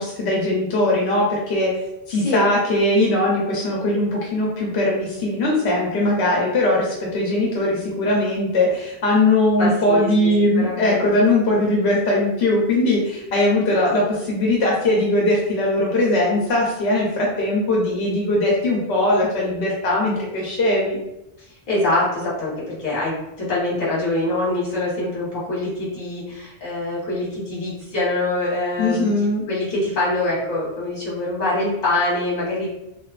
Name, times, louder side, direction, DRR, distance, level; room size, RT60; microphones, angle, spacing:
voice 1, 0.0-1.7 2.1-21.0 28.8-29.4, left 1 dB, 80° left, -3 dB, 0.8 m, -20 dB
voice 2, 2.2-2.5 9.6-11.3 21.4-29.1 29.5-32.7, left 2 dB, 45° left, -7 dB, 1.1 m, -24 dB
2.8 x 2.1 x 2.3 m, 0.88 s
omnidirectional pair, 1.1 m